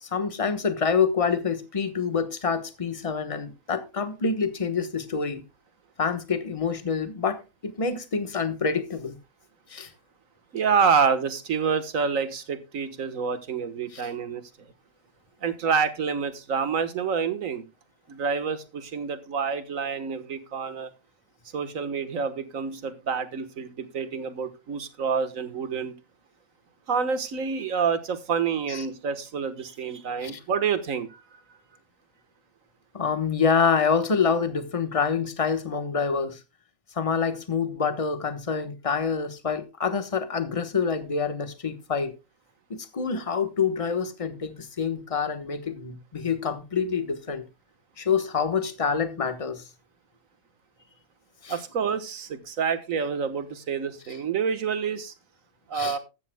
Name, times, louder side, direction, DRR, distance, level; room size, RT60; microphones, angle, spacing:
voice 1, 0.0-5.4 6.0-9.2 9.7-9.9 13.9-14.0 28.7-28.9 30.2-30.4 32.9-36.4 36.9-42.1 42.7-47.4 48.0-49.6 51.4-51.6 55.7-56.0, left 5 dB, 25° left, 1.2 m, -27 dB
voice 2, 10.5-14.4 15.4-17.7 18.1-20.9 21.5-25.9 26.9-31.4 51.5-55.1 55.7-56.0, right 6 dB, 80° right, 1.7 m, -27 dB
14.0 x 13.0 x 2.2 m
omnidirectional pair, 1.4 m